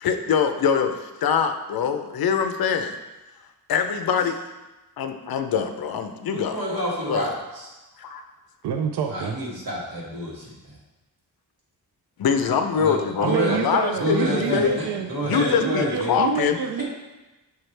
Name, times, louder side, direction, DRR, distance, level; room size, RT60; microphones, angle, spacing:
voice 1, 0.0-3.0 3.7-4.4 5.0-6.8 7.1-7.3 8.0-8.2 12.2-14.8 15.2-16.6, left 7 dB, 70° left, 7 dB, 0.6 m, -24 dB
voice 2, 6.3-7.7 9.1-10.7 12.8-13.0 13.2-13.6 14.0-16.2 16.8-16.9, right 1 dB, 65° right, -6 dB, 2.2 m, -28 dB
voice 3, 8.6-9.4 13.2-15.1 15.6-16.8, right 7 dB, 90° right, 5 dB, 0.5 m, -27 dB
7.0 x 4.6 x 3.3 m, 1.1 s
wide cardioid pair, 150°, 38 cm